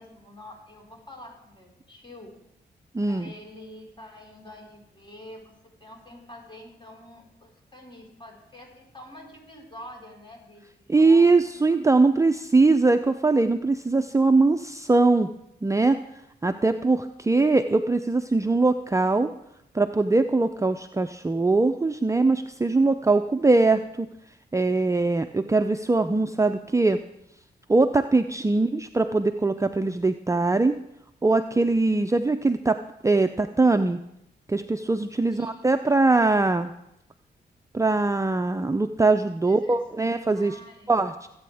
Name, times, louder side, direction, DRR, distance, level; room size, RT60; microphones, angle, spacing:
voice 1, 0.0-2.3 3.0-5.5 5.8-11.4 11.7-11.9 28.5-28.8 35.3-35.7 39.4-39.8 40.3-40.9, left 1 dB, 25° left, 0 dB, 4.8 m, -46 dB
voice 2, 2.9-3.3 10.9-15.3 15.6-16.0 16.4-19.3 19.7-24.1 24.5-27.0 27.7-30.8 31.2-32.8 33.0-34.0 34.5-36.7 37.7-40.6 40.9-41.3, right 3 dB, 15° right, 8 dB, 0.5 m, -21 dB
20.0 x 8.6 x 3.5 m, 0.80 s
cardioid pair, 55°, 18 cm